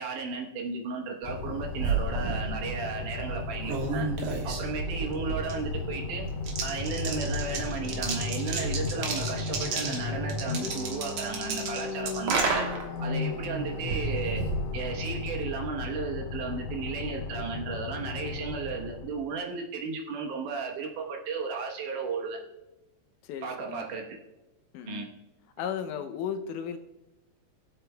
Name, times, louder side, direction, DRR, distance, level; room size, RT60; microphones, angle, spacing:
voice 1, 0.0-4.1 4.4-6.2 6.6-12.7 13.0-14.4 14.7-22.4 23.4-24.1 24.9-25.1, right 5 dB, 85° right, 0 dB, 2.7 m, -34 dB
sound 1, 1.2-19.3, left 4 dB, 65° left, 1.7 m, -35 dB
sound 2, 1.4-15.4, right 4 dB, 65° right, 2.3 m, -33 dB
voice 2, 23.2-23.9 24.7-25.1 25.6-26.8, left 8 dB, 85° left, 7 dB, 2.2 m, -35 dB
21.5 x 8.0 x 2.3 m, 1.0 s
omnidirectional pair, 3.5 m